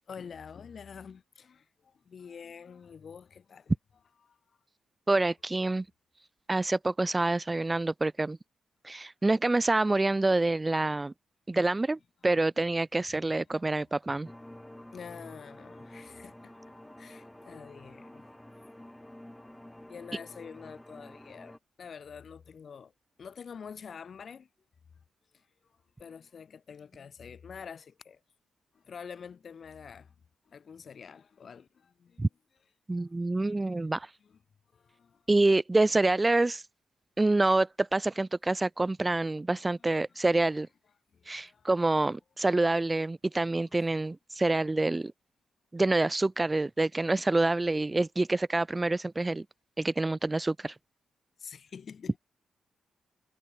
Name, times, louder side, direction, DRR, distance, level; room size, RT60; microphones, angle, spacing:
voice 1, 0.1-3.7 4.2-4.4 13.5-13.6 14.9-18.2 19.9-22.9 23.2-24.5 25.3-25.4 26.0-28.2 28.7-30.1 30.5-32.2 32.9-33.1 34.2-34.4 34.7-35.2 39.8-39.9 41.1-41.7 51.4-52.2, left 6 dB, 60° left, 2.5 m, -47 dB
voice 2, 5.1-5.8 6.5-8.4 8.8-11.1 11.5-14.3 32.2-32.3 32.9-34.1 35.3-36.6 37.2-40.7 41.3-45.1 45.7-49.4 49.8-50.7, right 2 dB, 25° right, 0.4 m, -27 dB
sound 1, 14.2-21.6, left 1 dB, 10° left, 2.4 m, -49 dB
supercardioid pair, 45°, 0 cm